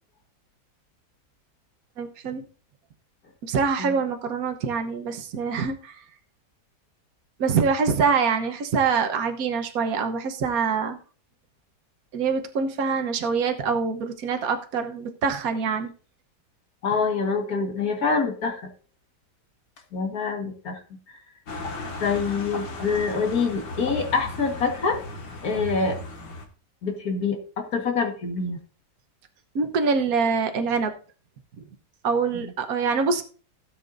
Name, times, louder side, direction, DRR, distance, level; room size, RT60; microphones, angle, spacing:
voice 1, 2.0-2.4 3.4-6.0 7.4-11.0 12.1-15.9 29.5-30.9 32.0-33.2, right 5 dB, 60° right, 5 dB, 1.5 m, -25 dB
voice 2, 16.8-18.6 19.9-20.8 22.0-25.0 25.4-26.0 26.8-28.6 32.3-32.5, left 5 dB, 60° left, 2 dB, 2.1 m, -26 dB
sound 1, 21.5-26.5, left 2 dB, 90° left, 2.5 m, -36 dB
16.0 x 8.2 x 2.6 m, 0.39 s
omnidirectional pair, 1.8 m